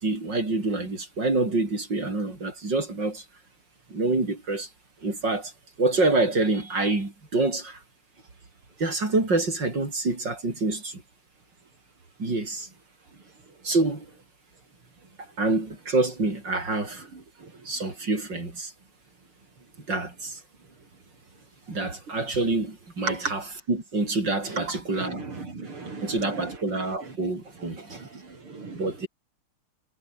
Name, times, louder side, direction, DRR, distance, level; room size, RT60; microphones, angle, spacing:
voice 1, 0.0-3.2 3.9-4.7 5.0-5.5 5.8-7.8 8.8-11.0 12.2-12.7 13.6-14.0 15.4-17.1 17.6-18.7 19.9-20.4 21.7-25.2 26.0-28.1 28.7-29.1, right 2 dB, 55° right, 6.6 m, -26 dB
voice 2, 24.6-26.6 27.0-27.1 27.8-28.9, right 4 dB, 85° right, 5.6 m, -37 dB
omnidirectional pair, 2.3 m